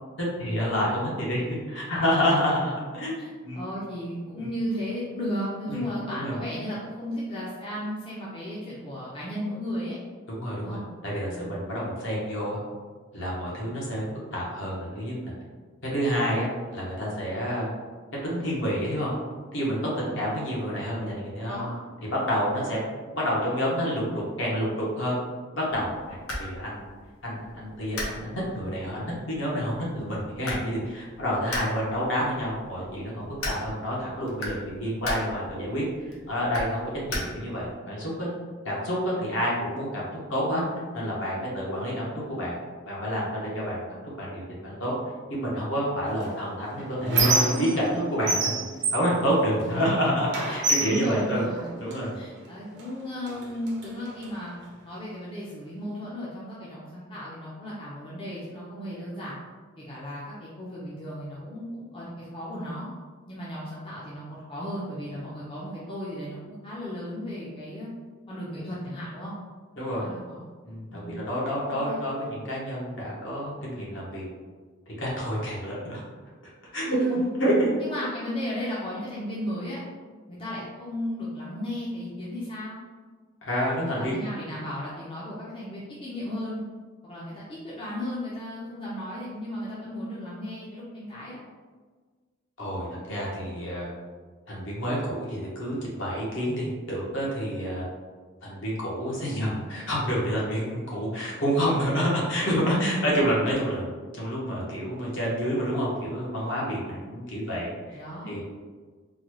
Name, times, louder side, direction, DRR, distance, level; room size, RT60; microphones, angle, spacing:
voice 1, 0.2-3.1 3.4-3.6 5.7-5.9 6.1-6.3 10.3-12.6 13.1-15.3 15.9-17.7 18.2-19.1 19.5-21.6 22.1-22.8 23.1-25.2 25.5-26.8 27.2-38.3 38.6-40.6 40.9-42.6 42.9-44.9 45.3-47.2 47.6-48.6 48.9-51.4 51.8-52.1 69.8-70.0 70.6-74.2 75.0-76.0 76.7-77.7 83.4-84.2 92.6-93.9 94.5-97.8 98.4-108.0 108.2-108.4, equal, 55° left, -5 dB, 1.0 m, -28 dB
voice 2, 3.2-10.0 10.6-10.9 11.3-11.5 19.9-20.3 21.4-21.8 49.8-50.0 50.4-51.7 52.1-54.5 54.8-59.3 59.8-62.9 63.3-67.9 68.3-69.3 70.0-70.4 70.9-71.1 71.8-72.1 76.9-77.3 77.8-79.8 80.3-82.7 84.0-86.6 87.0-91.4 102.7-103.2 107.9-108.4, equal, 25° left, -8 dB, 0.5 m, -35 dB
sound 1, 25.7-37.7, left 1 dB, 80° left, 0.8 m, -39 dB
Squeak, 46.2-48.0 48.3-49.9 50.3-52.0 52.8-52.9 53.3-54.3, right 2 dB, 50° right, 0.6 m, -27 dB
3.9 x 2.2 x 3.0 m, 1.4 s
head